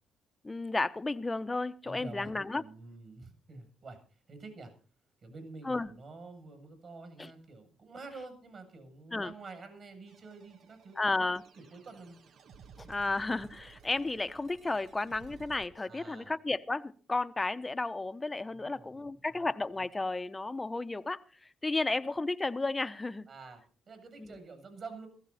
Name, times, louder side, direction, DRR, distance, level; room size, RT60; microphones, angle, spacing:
voice 1, 0.4-2.6 5.6-5.9 7.2-7.3 9.1-9.3 11.0-11.4 12.8-23.3 24.2-24.4, left 3 dB, 20° left, 1.0 m, -33 dB
voice 2, 1.8-4.0 4.3-4.7 5.2-11.1 11.6-12.2 15.9-16.3 18.5-19.4 23.3-23.6 23.9-25.1, right 3 dB, 50° right, 7.8 m, -48 dB
sound 1, 10.1-15.7, right 7 dB, 65° right, 1.3 m, -56 dB
16.5 x 15.5 x 4.3 m
cardioid pair, 90°, 0 cm